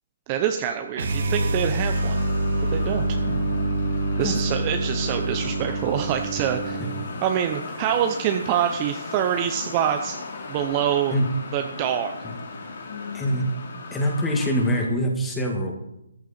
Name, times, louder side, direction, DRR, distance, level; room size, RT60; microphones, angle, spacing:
voice 1, 0.3-2.2 2.7-3.2 4.2-6.8 7.2-10.2 10.5-11.2 11.5-12.2, right 9 dB, 20° right, 5 dB, 0.7 m, -25 dB
sound 1, 0.9-7.1, right 1 dB, 50° right, 2.5 m, -26 dB
sound 2, 1.9-14.9, left 4 dB, 50° left, 3.2 m, -37 dB
voice 2, 13.1-13.5 13.9-15.8, equal, 5° left, 1 dB, 1.9 m, -24 dB
14.0 x 12.0 x 4.3 m, 0.87 s
hypercardioid pair, 165°, 0 cm